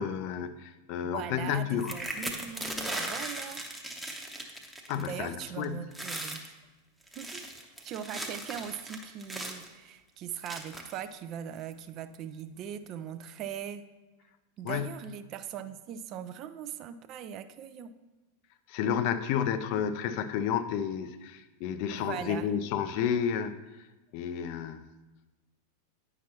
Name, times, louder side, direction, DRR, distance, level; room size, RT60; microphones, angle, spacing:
voice 1, 0.0-2.0 4.9-5.9 14.6-15.0 18.7-23.5 24.1-24.8, left 8 dB, 45° left, 12 dB, 0.4 m, -31 dB
voice 2, 1.0-3.6 5.0-6.5 7.2-13.9 14.6-17.9 21.9-22.5, right 9 dB, 35° right, 11 dB, 0.4 m, -40 dB
sound 1, 1.8-5.1 5.4-5.7 5.9-6.5 7.0-9.7 10.5-11.0 11.7-11.8 12.1-12.4, right 1 dB, 5° right, 0.8 m, -38 dB
9.2 x 5.7 x 2.9 m, 1.1 s
figure-of-eight pair, 90°, 0 cm